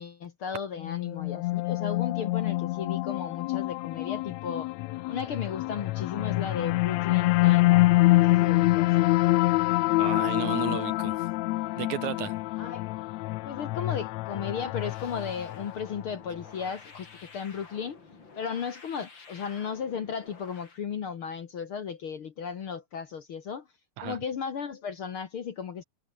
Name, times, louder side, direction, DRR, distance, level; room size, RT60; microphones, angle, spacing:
voice 1, 0.0-4.7 5.1-8.9 12.6-12.9 13.4-18.0 18.4-23.6 24.0-25.8, left 6 dB, 50° left, 1.8 m, -35 dB
sound 1, 0.8-16.1, left 20 dB, 90° left, 1.5 m, -26 dB
voice 2, 10.0-11.2 11.8-12.4 24.0-24.2, right 12 dB, 70° right, 2.3 m, -33 dB
sound 2, 14.7-20.8, left 4 dB, 35° left, 4.1 m, -51 dB
omnidirectional pair, 3.8 m